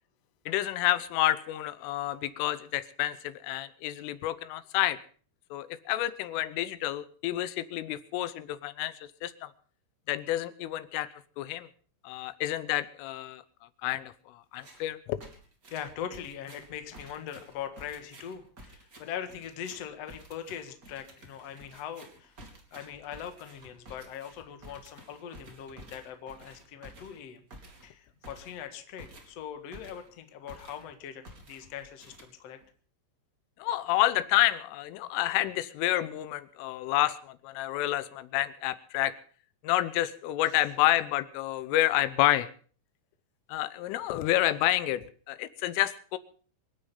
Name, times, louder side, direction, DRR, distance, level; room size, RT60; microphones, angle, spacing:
voice 1, 0.5-5.0 5.5-9.0 9.2-9.5 10.1-11.1 11.4-11.7 12.1-13.4 13.8-15.2 33.6-39.1 39.6-42.5 43.5-46.2, left 14 dB, 90° left, 14 dB, 3.5 m, -29 dB
sound 1, 14.5-14.9 15.2-30.2 30.5-30.9 31.2-32.7, right 1 dB, 25° right, 2.5 m, -52 dB
voice 2, 15.7-22.3 22.7-27.4 27.8-32.6 40.5-40.6, left 9 dB, 65° left, 7 dB, 1.6 m, -41 dB
26.0 x 9.2 x 5.4 m, 0.43 s
omnidirectional pair, 5.6 m